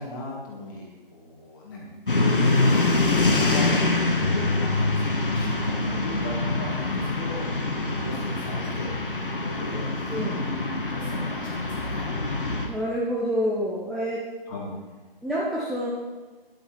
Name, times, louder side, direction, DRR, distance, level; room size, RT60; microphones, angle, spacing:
voice 1, 0.0-7.5 7.8-12.1 14.5-14.7, left 1 dB, 20° left, -3 dB, 2.1 m, -38 dB
sound 1, 2.1-12.7, left 2 dB, 60° left, 1.6 m, -25 dB
voice 2, 10.1-10.5 12.7-14.2 15.2-15.9, equal, ahead, -6 dB, 0.3 m, -27 dB
10.0 x 8.7 x 4.4 m, 1.3 s
figure-of-eight pair, 150°, 29 cm